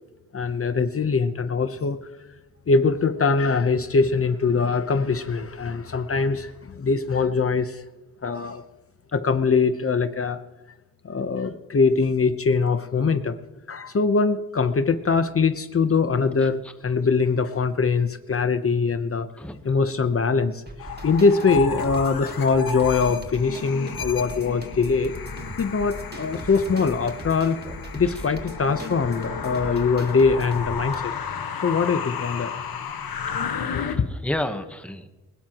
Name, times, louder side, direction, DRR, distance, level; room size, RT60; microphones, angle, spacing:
voice 1, 0.3-2.0 2.7-7.8 8.2-8.6 9.1-10.4 11.0-13.3 13.7-19.3 19.6-20.6 21.0-25.2 25.6-27.6 27.9-31.1 31.6-32.5 33.7-34.1, left 4 dB, 40° left, 9 dB, 0.9 m, -22 dB
voice 2, 16.4-16.7 19.4-19.8 33.5-35.1, left 1 dB, 5° left, 7 dB, 1.0 m, -32 dB
sound 1, 20.7-30.9, right 2 dB, 25° right, 1.9 m, -39 dB
sound 2, 20.8-34.0, left 7 dB, 85° left, 1.5 m, -33 dB
21.5 x 19.5 x 3.0 m, 1.1 s
wide cardioid pair, 140°, 35 cm